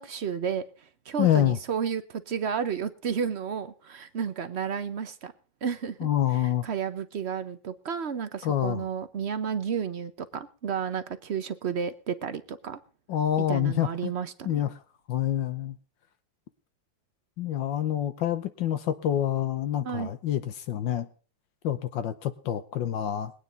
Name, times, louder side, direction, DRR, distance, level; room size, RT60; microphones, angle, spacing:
voice 1, 0.0-5.3 5.6-6.1 6.3-12.8 13.5-14.6 19.8-20.1, right 7 dB, 55° right, 11 dB, 0.7 m, -32 dB
voice 2, 1.2-1.6 6.0-6.7 8.4-8.9 13.1-14.1 14.4-14.8 15.1-15.8 17.4-21.1 21.6-23.3, left 11 dB, 75° left, 11 dB, 1.5 m, -27 dB
21.0 x 9.3 x 3.9 m, 0.38 s
omnidirectional pair, 2.1 m